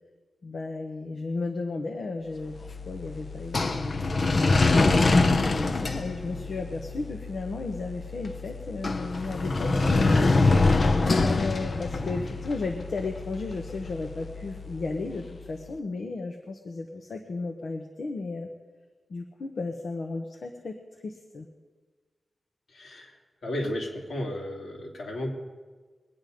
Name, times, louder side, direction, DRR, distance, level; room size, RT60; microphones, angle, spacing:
voice 1, 0.4-2.5 2.9-10.3 11.1-18.5 19.1-21.5, left 3 dB, 65° left, 3 dB, 1.1 m, -34 dB
sound 1, 2.4-15.5, left 3 dB, 40° left, 0.7 m, -26 dB
voice 2, 22.7-23.2 23.4-25.3, left 1 dB, 80° left, -1 dB, 3.1 m, -33 dB
22.5 x 9.4 x 5.2 m, 1.4 s
wide cardioid pair, 150°, 0 cm